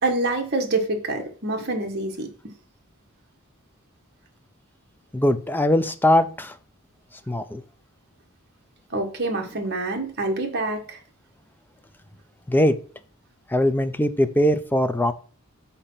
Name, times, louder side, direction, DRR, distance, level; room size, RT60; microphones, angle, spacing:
voice 1, 0.0-2.3 8.9-11.0, right 2 dB, 50° right, 3 dB, 1.5 m, -26 dB
voice 2, 5.1-6.5 7.3-7.6 12.5-12.8 13.5-15.1, left 1 dB, 10° left, 10 dB, 0.5 m, -21 dB
6.9 x 4.3 x 5.6 m, 0.40 s
head